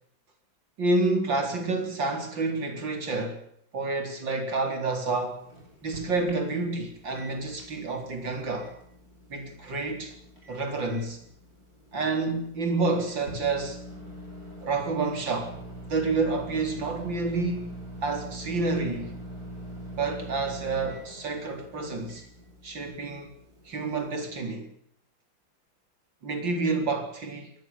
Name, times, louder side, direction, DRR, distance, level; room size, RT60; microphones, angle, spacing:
voice 1, 0.8-3.4 3.7-5.4 5.8-8.7 9.3-10.1 10.5-11.2 11.9-13.8 14.6-15.6 15.9-19.2 20.0-22.2 22.6-23.3 23.7-24.7 26.2-27.5, right 3 dB, 80° right, 4.8 m, -29 dB
Microwave oven, 5.1-24.4, equal, 50° right, 8.7 m, -44 dB
22.0 x 18.5 x 7.2 m
omnidirectional pair, 2.0 m